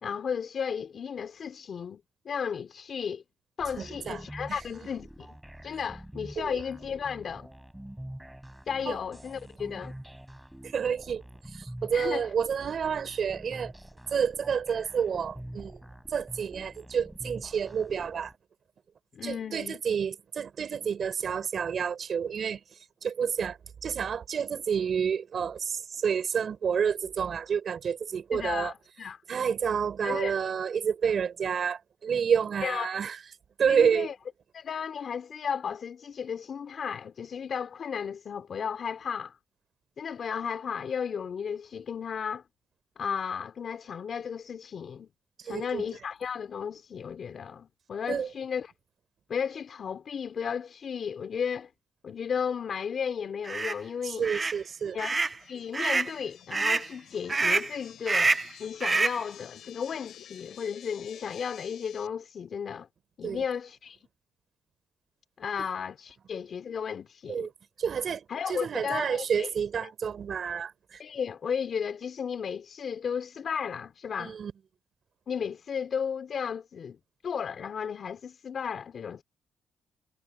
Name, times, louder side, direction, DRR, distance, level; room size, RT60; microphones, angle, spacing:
voice 1, 0.0-3.2 3.6-5.3 5.6-7.5 8.7-9.9 11.9-12.2 19.1-19.8 28.3-29.2 30.0-30.3 32.6-32.9 33.7-34.1 34.5-39.4 40.0-42.4 43.0-45.1 45.4-48.7 49.3-51.7 52.0-54.2 54.9-55.2 55.5-62.9 63.2-64.0 65.4-67.5 68.3-69.5 69.8-69.9 71.0-74.3 75.3-77.0 77.2-79.2, left 7 dB, 50° left, 2.8 m, -34 dB
sound 1, 3.6-18.4, right 1 dB, 5° right, 7.6 m, -46 dB
voice 2, 3.8-4.6 6.4-6.6 8.9-9.0 10.6-13.7 14.1-15.8 16.1-18.3 19.2-28.7 29.3-33.2 33.6-34.1 45.4-45.9 48.1-48.3 54.0-55.0 63.2-63.4 65.6-65.7 67.3-67.5 67.8-71.0 74.2-74.5, right 7 dB, 50° right, 3.8 m, -29 dB
sound 2, 53.5-53.7 54.2-54.6 55.0-55.4 55.7-56.1 56.5-56.9 57.3-57.7 58.1-58.5 58.8-59.2, right 3 dB, 25° right, 0.3 m, -26 dB
sound 3, 54.3-62.1, left 10 dB, 75° left, 2.9 m, -51 dB
cardioid pair, 90°, 0 cm